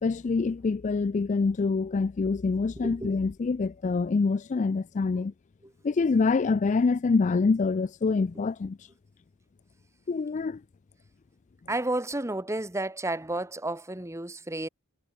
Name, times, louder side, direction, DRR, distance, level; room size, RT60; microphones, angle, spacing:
voice 1, 0.0-5.3 5.8-8.8 10.1-10.6, left 4 dB, 35° left, 0.3 m, -26 dB
voice 2, 2.8-3.2 11.7-14.7, right 2 dB, 15° right, 1.4 m, -31 dB
head